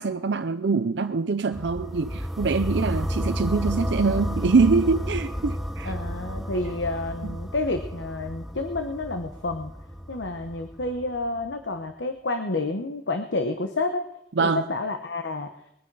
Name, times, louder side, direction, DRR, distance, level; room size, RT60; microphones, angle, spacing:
voice 1, 0.0-5.9 14.4-14.7, right 4 dB, 75° right, 0.6 m, -24 dB
sound 1, 1.5-11.5, equal, ahead, 0.6 m, -32 dB
voice 2, 5.8-9.7 10.1-14.0 14.4-15.5, left 2 dB, 85° left, 1.1 m, -29 dB
21.0 x 9.9 x 4.8 m
head